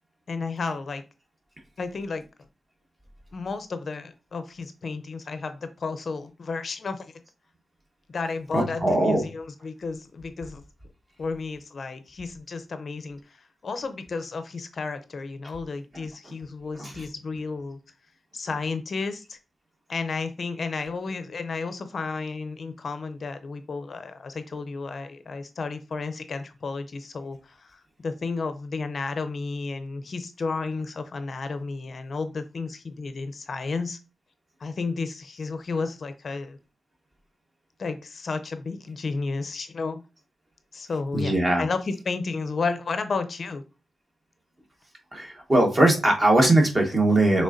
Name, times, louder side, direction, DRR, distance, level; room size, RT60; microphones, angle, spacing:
voice 1, 0.3-1.0 1.8-2.2 3.3-7.2 8.1-10.6 11.2-17.8 18.3-19.4 19.9-34.0 34.6-36.6 37.8-40.0 40.7-43.6, left 4 dB, 50° left, 9 dB, 0.5 m, -32 dB
voice 2, 8.5-9.3 16.8-17.0 41.1-41.7 45.1-47.4, right 1 dB, 25° right, 2 dB, 1.2 m, -21 dB
6.4 x 3.3 x 2.5 m, 0.31 s
wide cardioid pair, 145°, 0 cm